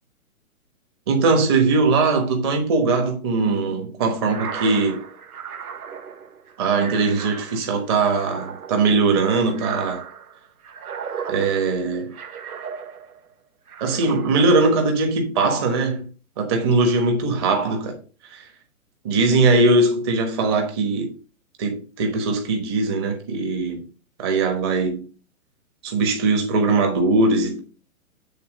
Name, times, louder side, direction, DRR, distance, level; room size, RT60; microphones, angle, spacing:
voice 1, 1.1-5.0 6.6-10.0 11.3-12.1 13.8-16.1 16.4-18.5 19.0-21.1 21.6-23.8 24.2-25.1 25.8-27.6, right 3 dB, 20° right, 1.2 m, -20 dB
sound 1, 4.2-13.3 13.7-14.7, right 7 dB, 90° right, 1.3 m, -36 dB
8.6 x 3.9 x 5.0 m
hypercardioid pair, 170°, 43 cm